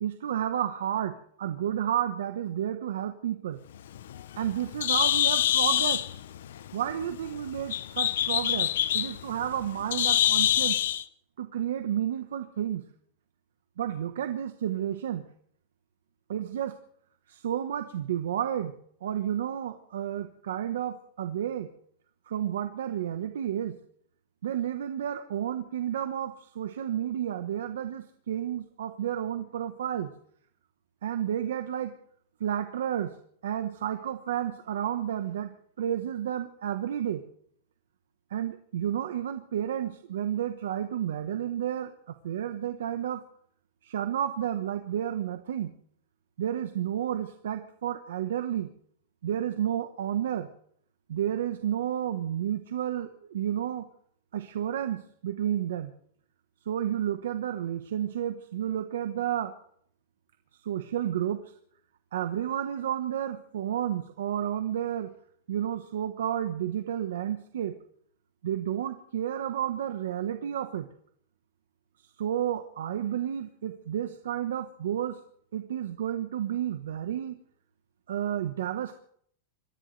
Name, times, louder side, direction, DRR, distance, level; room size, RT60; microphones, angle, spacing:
voice 1, 0.0-3.6 4.4-6.0 6.7-10.8 11.4-12.8 13.8-15.2 16.3-16.7 17.3-21.7 22.3-23.8 24.4-30.1 31.0-31.9 32.4-33.1 33.4-35.5 35.8-37.2 38.3-43.2 43.8-45.7 46.4-48.7 49.2-50.5 51.1-53.9 54.3-55.9 56.7-59.5 60.6-61.4 62.1-65.1 65.5-67.7 68.4-70.9 72.2-75.2 75.5-77.4 78.1-79.0, right 10 dB, 85° right, 8 dB, 1.2 m, -31 dB
Bird, 3.7-11.0, left 11 dB, 70° left, 0.7 m, -26 dB
26.5 x 14.5 x 3.4 m, 0.63 s
supercardioid pair, 170°, 0 cm